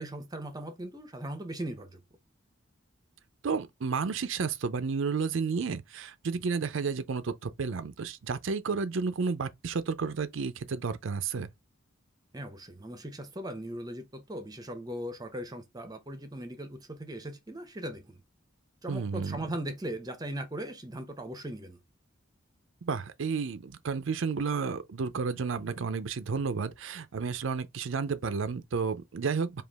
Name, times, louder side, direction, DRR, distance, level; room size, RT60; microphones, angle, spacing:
voice 1, 0.0-2.0 12.3-18.2 18.8-21.8, right 1 dB, 20° right, 0.6 m, -39 dB
voice 2, 3.4-11.5 18.9-19.4 22.8-29.6, right 5 dB, 65° right, 0.5 m, -31 dB
5.0 x 2.4 x 3.4 m
head